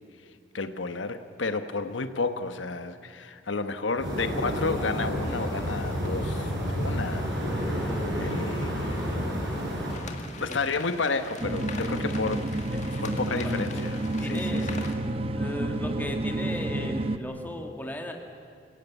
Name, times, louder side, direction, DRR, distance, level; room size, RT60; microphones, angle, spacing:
voice 1, 0.5-7.2 7.5-9.1 10.4-12.5 13.0-14.8, left 3 dB, 85° left, 9 dB, 1.1 m, -32 dB
sound 1, 4.0-9.9, equal, 70° right, 7.0 m, -30 dB
sound 2, 9.9-15.0, left 4 dB, 40° left, 2.0 m, -42 dB
voice 2, 10.5-10.9 12.9-13.0 13.3-13.8 14.2-14.7 15.4-18.1, equal, 10° left, 2 dB, 2.0 m, -36 dB
sound 3, 11.4-17.2, right 1 dB, 30° right, 0.8 m, -30 dB
27.0 x 16.5 x 8.3 m, 2.4 s
head